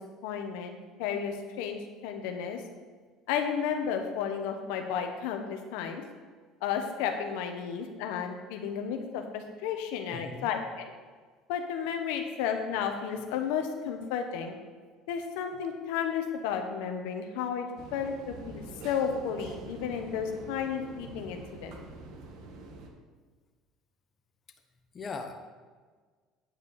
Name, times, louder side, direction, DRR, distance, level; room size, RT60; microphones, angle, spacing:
voice 1, 0.2-2.6 3.3-6.0 6.6-10.9 11.5-14.6 15.1-17.7 17.9-21.8, left 7 dB, 85° left, 5 dB, 1.0 m, -33 dB
voice 2, 10.1-10.5 24.9-25.3, left 4 dB, 30° left, 5 dB, 0.9 m, -38 dB
sound 1, 17.8-22.9, right 3 dB, 65° right, 1.4 m, -45 dB
9.0 x 5.0 x 6.6 m, 1.5 s
supercardioid pair, 115°, 0 cm